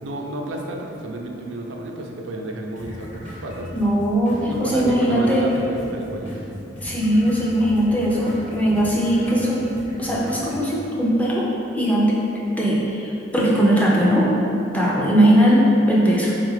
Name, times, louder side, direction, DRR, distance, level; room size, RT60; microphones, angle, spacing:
voice 1, 0.0-3.7 4.4-6.4, right 1 dB, 80° right, 1 dB, 0.4 m, -31 dB
sound 1, 2.8-10.8, equal, 35° left, 1.1 m, -38 dB
voice 2, 3.7-5.5 6.8-9.7 10.0-11.5 11.7-12.2 12.6-14.3 14.7-16.3, equal, 10° left, -5 dB, 0.4 m, -19 dB
3.9 x 2.4 x 3.1 m, 2.9 s
head